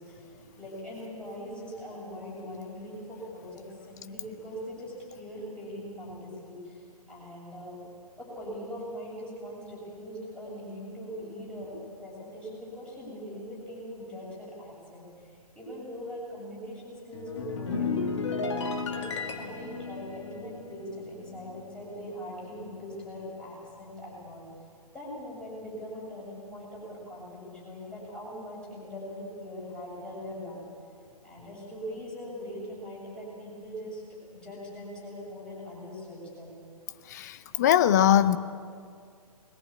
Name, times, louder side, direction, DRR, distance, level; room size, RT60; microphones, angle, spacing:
voice 1, 0.0-7.8 8.2-18.5 18.9-24.4 24.9-30.6 31.0-36.6, equal, 5° left, -6 dB, 7.3 m, -41 dB
sound 1, 17.1-21.8 22.0-22.3, left 4 dB, 45° left, 2.0 m, -34 dB
voice 2, 37.0-38.4, left 10 dB, 25° left, 13 dB, 0.7 m, -21 dB
21.5 x 20.5 x 8.6 m, 2.2 s
figure-of-eight pair, 130°, 20 cm